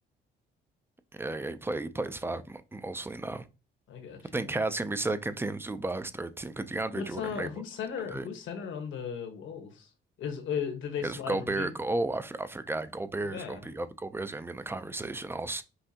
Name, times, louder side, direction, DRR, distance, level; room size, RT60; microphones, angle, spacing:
voice 1, 1.1-3.5 4.3-7.5 8.1-8.2 11.0-15.6, right 2 dB, 10° right, 0.4 m, -33 dB
voice 2, 3.9-4.5 6.9-9.9 10.2-11.7 13.3-13.6, left 7 dB, 75° left, 1.3 m, -36 dB
5.6 x 2.7 x 2.8 m
cardioid pair, 90°, 20 cm